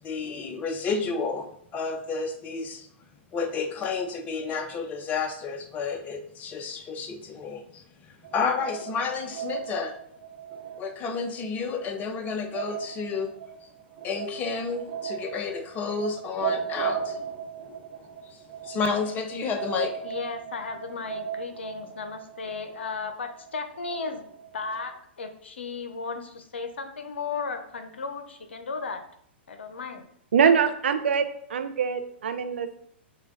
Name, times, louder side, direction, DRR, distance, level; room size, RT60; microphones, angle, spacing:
voice 1, 0.0-2.9 3.3-9.9 10.8-13.3 14.0-17.2 18.2-18.4 18.6-19.9, left 5 dB, 25° left, 5 dB, 0.7 m, -31 dB
sound 1, 8.2-24.9, right 8 dB, 50° right, 0.8 m, -37 dB
voice 2, 20.0-24.2 24.5-29.0 29.5-30.0 30.4-30.5, left 4 dB, 80° left, 7 dB, 0.7 m, -35 dB
voice 3, 30.3-32.8, right 7 dB, 75° right, 8 dB, 0.5 m, -24 dB
5.8 x 2.3 x 3.8 m, 0.66 s
hypercardioid pair, 115°, 6 cm